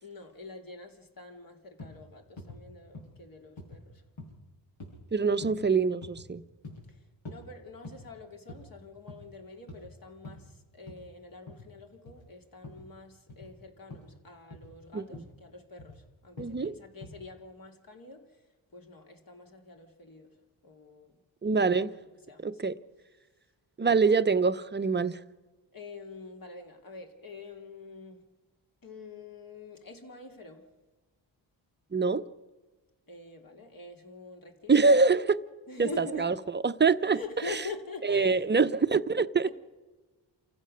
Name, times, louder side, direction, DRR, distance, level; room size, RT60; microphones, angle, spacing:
voice 1, 0.0-4.0 6.9-18.5 18.7-21.1 21.6-22.0 22.3-22.8 25.7-28.3 28.8-30.7 33.1-34.7 35.7-36.4 37.1-38.5, left 3 dB, 45° left, 2.9 m, -46 dB
sound 1, 1.8-2.0 2.4-2.6 2.9-3.2 3.6-3.8 4.2-4.4 4.8-5.0 5.4-5.7 6.0-6.3 6.6-6.9 7.3-7.4 7.8-8.1 8.5-8.7 9.0-9.3 9.7-9.9 10.2-10.4 10.9-11.0 11.5-11.7 12.1-12.2 12.6-12.9 13.3-13.5 13.9-14.1 14.5-14.7 15.1-15.3 15.8-16.0 16.4-16.6 17.0-17.2, left 2 dB, 85° left, 7.2 m, -45 dB
voice 2, 5.1-6.4 14.9-15.3 16.4-16.7 21.4-21.9 22.4-22.8 23.8-25.2 31.9-32.2 34.7-35.4 35.8-37.2 37.5-37.6 38.0-39.5, right 4 dB, 25° right, 0.8 m, -25 dB
28.5 x 15.0 x 6.5 m
cardioid pair, 85°, 46 cm